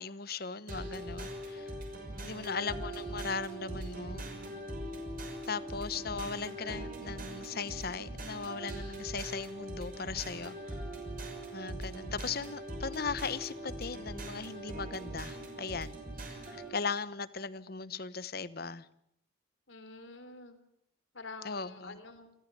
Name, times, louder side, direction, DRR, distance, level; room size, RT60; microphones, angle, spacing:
voice 1, 0.0-1.7 2.2-4.3 5.5-10.8 11.5-16.0 16.5-18.9 21.4-22.0, left 5 dB, 50° left, 1.0 m, -38 dB
sound 1, 0.7-16.7, right 1 dB, 45° right, 6.3 m, -41 dB
voice 2, 2.1-2.5 19.7-20.6 21.1-22.3, left 3 dB, 75° left, 3.5 m, -48 dB
29.0 x 14.5 x 9.2 m
head